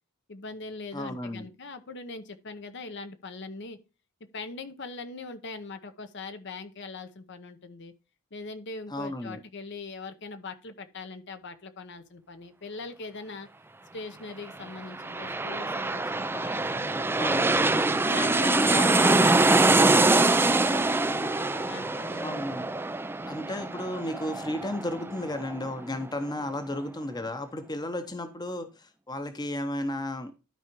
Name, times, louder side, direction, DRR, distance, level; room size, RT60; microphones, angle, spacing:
voice 1, 0.3-3.8 4.3-7.9 8.3-13.5 13.9-17.6 18.1-22.4, left 3 dB, 55° left, 0.9 m, -41 dB
voice 2, 0.9-1.5 8.9-9.4 17.1-17.6 18.7-19.1 22.2-22.7 23.3-30.3, left 1 dB, 20° left, 0.9 m, -34 dB
sound 1, 14.7-26.0 26.4-26.5, right 2 dB, 10° right, 0.4 m, -24 dB
12.5 x 4.9 x 3.0 m
head